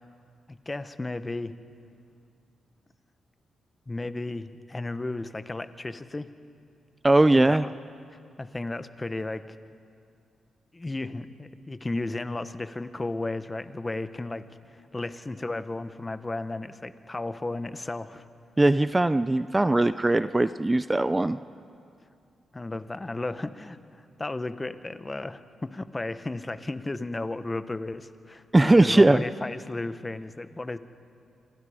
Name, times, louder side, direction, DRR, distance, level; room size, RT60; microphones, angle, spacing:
voice 1, 0.5-1.5 3.9-6.3 7.3-7.7 8.4-9.6 10.7-18.2 22.5-30.8, left 2 dB, 25° left, 11 dB, 1.2 m, -34 dB
voice 2, 7.0-7.6 18.6-21.4 28.5-29.2, right 2 dB, 20° right, 13 dB, 0.5 m, -20 dB
27.5 x 26.5 x 5.1 m, 2.4 s
cardioid pair, 65°, 0 cm